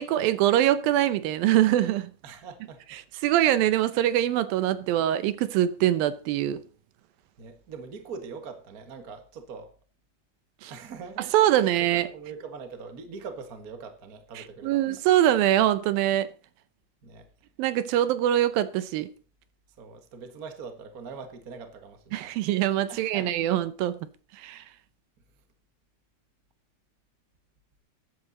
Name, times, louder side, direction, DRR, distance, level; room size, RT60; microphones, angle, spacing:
voice 1, 0.0-2.1 3.2-6.6 10.6-10.7 11.3-12.1 14.6-16.3 17.6-19.1 22.1-24.1 24.4-24.6, right 12 dB, 80° right, 2.4 m, -23 dB
voice 2, 2.2-3.0 7.4-9.7 10.7-15.0 17.0-17.3 19.8-22.4 22.9-23.3, right 5 dB, 50° right, 1.0 m, -42 dB
14.5 x 10.5 x 4.1 m
omnidirectional pair, 4.3 m